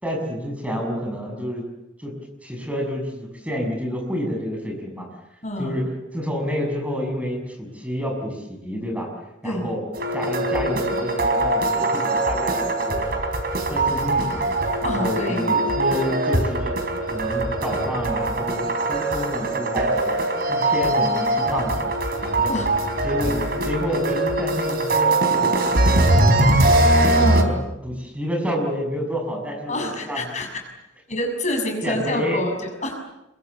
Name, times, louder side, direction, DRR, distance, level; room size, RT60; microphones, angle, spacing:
voice 1, 0.0-1.6 2.0-2.1 2.4-5.1 5.6-9.1 9.4-9.8 10.1-13.2 13.7-14.5 14.8-16.7 17.1-20.1 20.5-21.8 22.2-22.5 23.0-23.4 23.6-26.8 27.3-27.6 27.8-30.3 31.8-32.4, equal, 5° right, 1 dB, 6.8 m, -29 dB
voice 2, 5.4-5.8 9.4-9.7 14.8-15.5 22.5-22.7 27.2-27.5 29.7-30.5 31.1-32.9, left 1 dB, 40° left, 3 dB, 6.6 m, -27 dB
sound 1, 9.9-27.4, right 2 dB, 55° right, 3.9 m, -21 dB
27.0 x 23.0 x 8.3 m, 0.91 s
head